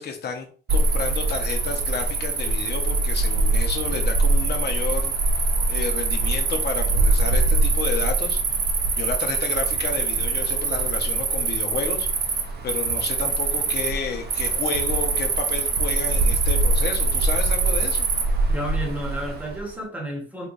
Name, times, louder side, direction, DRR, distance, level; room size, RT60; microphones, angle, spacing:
voice 1, 0.0-12.1 12.6-18.1, left 5 dB, 55° left, 4 dB, 0.9 m, -31 dB
Cricket, 0.7-19.6, right 3 dB, 55° right, 0.8 m, -23 dB
voice 2, 18.5-20.5, right 1 dB, 10° right, 0 dB, 1.2 m, -31 dB
3.2 x 3.2 x 2.6 m, 0.40 s
cardioid pair, 90°, 20 cm